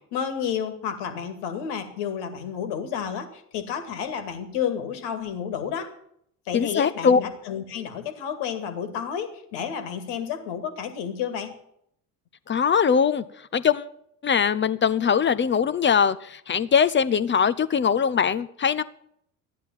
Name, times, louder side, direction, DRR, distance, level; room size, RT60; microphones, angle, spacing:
voice 1, 0.0-5.9 6.5-11.5, left 8 dB, 60° left, 8 dB, 2.3 m, -31 dB
voice 2, 6.5-7.2 12.5-13.2 13.5-13.9 14.2-18.8, left 7 dB, 25° left, 14 dB, 0.8 m, -21 dB
13.5 x 10.0 x 7.3 m, 0.71 s
hypercardioid pair, 60°, 45 cm